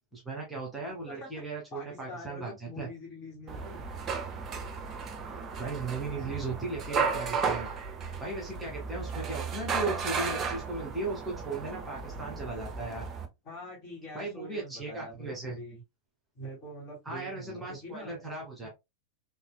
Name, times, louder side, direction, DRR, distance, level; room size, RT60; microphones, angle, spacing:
voice 1, 0.1-2.9 5.6-7.7 8.2-13.1 14.1-15.6 17.1-18.7, right 3 dB, 5° right, 1.8 m, -37 dB
voice 2, 1.7-3.8 13.4-15.8 16.3-18.2, equal, 35° left, 2.6 m, -44 dB
sound 1, 3.5-13.3, right 5 dB, 25° right, 0.8 m, -34 dB
4.1 x 3.3 x 2.2 m
figure-of-eight pair, 90°, 0 cm